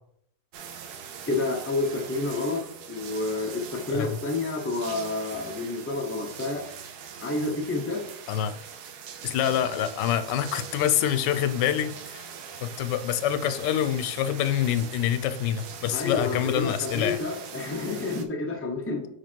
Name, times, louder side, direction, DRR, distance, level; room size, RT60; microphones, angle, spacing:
sound 1, 0.5-18.2, right 7 dB, 75° right, 1.2 m, -42 dB
voice 1, 1.3-6.6 7.2-8.0 15.9-19.1, left 3 dB, 15° left, 1 dB, 0.6 m, -29 dB
voice 2, 8.3-8.6 9.2-12.2 12.6-17.2, left 10 dB, 90° left, 12 dB, 1.2 m, -26 dB
5.1 x 4.7 x 4.5 m, 0.72 s
omnidirectional pair, 1.8 m